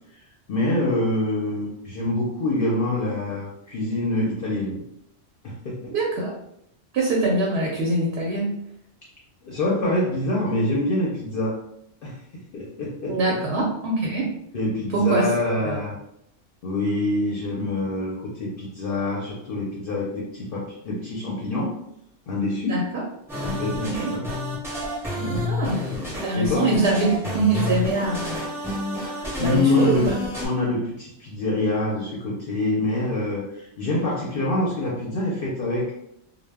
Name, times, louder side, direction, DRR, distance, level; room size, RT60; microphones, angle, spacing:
voice 1, 0.5-4.8 5.4-5.9 9.4-11.6 12.0-12.2 12.5-13.4 14.5-15.9 16.6-21.8 22.3-22.8 23.4-24.3 25.2-25.5 26.3-26.7 29.0-30.1 30.4-35.9, left 2 dB, 60° left, -4 dB, 0.6 m, -25 dB
voice 2, 5.9-6.3 6.9-8.5 13.1-14.3 14.9-15.8 22.7-23.0 23.8-24.1 25.4-25.8 26.2-28.5 29.4-30.0, right 2 dB, 65° right, -2 dB, 0.8 m, -24 dB
sound 1, 23.3-30.5, left 1 dB, 5° right, 0.6 m, -29 dB
2.1 x 2.0 x 3.3 m, 0.74 s
omnidirectional pair, 1.2 m